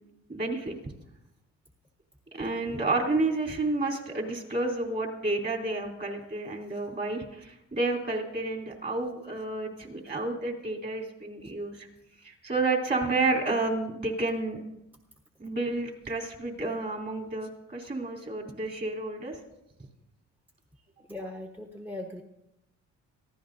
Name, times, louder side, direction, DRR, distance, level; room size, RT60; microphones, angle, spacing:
voice 1, 0.3-0.9 2.3-11.9 12.2-14.6 15.4-19.4, right 2 dB, 35° right, 1 dB, 3.6 m, -30 dB
voice 2, 21.1-22.2, left 1 dB, 5° right, 2 dB, 1.1 m, -39 dB
22.5 x 15.0 x 2.7 m, 0.85 s
cardioid pair, 90°, 30 cm